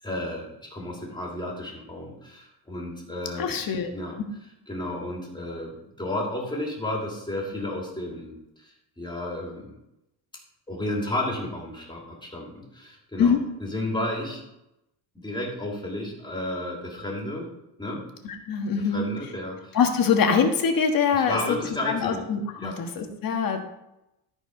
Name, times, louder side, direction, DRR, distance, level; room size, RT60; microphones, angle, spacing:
voice 1, 0.0-3.6 3.9-4.2 4.7-9.7 10.7-13.3 13.6-14.4 15.1-17.5 17.8-18.1 18.9-19.8 21.1-22.2 22.6-22.8, left 1 dB, 10° left, -2 dB, 2.8 m, -32 dB
voice 2, 3.4-3.9 13.2-13.5 18.2-19.1 19.7-21.6 21.8-23.6, left 6 dB, 45° left, 4 dB, 1.5 m, -24 dB
13.0 x 4.8 x 5.3 m, 0.88 s
cardioid pair, 140°, 46 cm